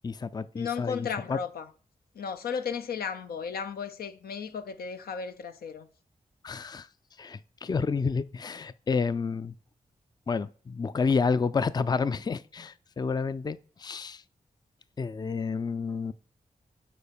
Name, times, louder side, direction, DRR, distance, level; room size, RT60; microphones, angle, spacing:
voice 1, 0.0-1.4 6.4-6.9 7.2-9.5 10.3-14.2 15.0-16.1, left 5 dB, 25° left, 0.4 m, -30 dB
voice 2, 0.5-1.7 2.1-5.9, left 6 dB, 80° left, 0.6 m, -34 dB
6.8 x 4.2 x 5.2 m
cardioid pair, 45°, 16 cm